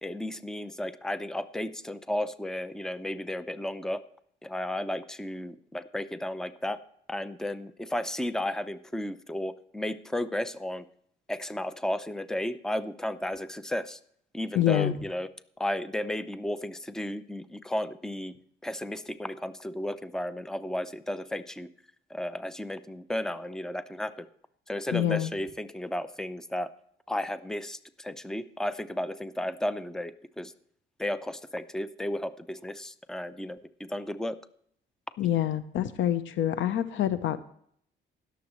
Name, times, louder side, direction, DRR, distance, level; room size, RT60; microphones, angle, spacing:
voice 1, 0.0-4.0 4.4-6.8 7.1-10.8 11.3-14.0 14.3-15.3 15.6-18.3 18.6-21.7 22.1-24.3 24.7-26.7 27.1-30.5 31.0-34.4, left 1 dB, 5° left, 13 dB, 0.7 m, -33 dB
voice 2, 14.5-14.9 24.9-25.3 35.2-37.4, left 12 dB, 75° left, 13 dB, 0.8 m, -26 dB
20.5 x 7.2 x 3.1 m, 0.66 s
cardioid pair, 90°, 20 cm